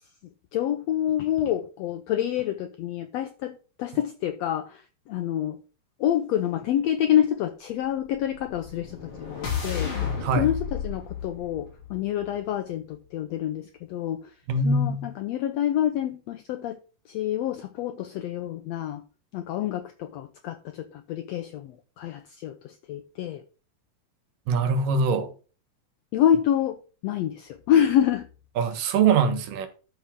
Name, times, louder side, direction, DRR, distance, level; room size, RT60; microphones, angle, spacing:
voice 1, 0.5-5.6 6.0-14.3 14.6-16.8 17.1-19.0 19.3-23.4 26.1-26.8 27.0-28.3, left 10 dB, 85° left, 1.5 m, -27 dB
sound 1, 8.3-12.5, left 7 dB, 40° left, 3.1 m, -33 dB
voice 2, 14.5-15.1 24.5-25.3 28.6-29.7, right 4 dB, 85° right, 2.9 m, -23 dB
13.0 x 5.5 x 3.6 m
omnidirectional pair, 3.7 m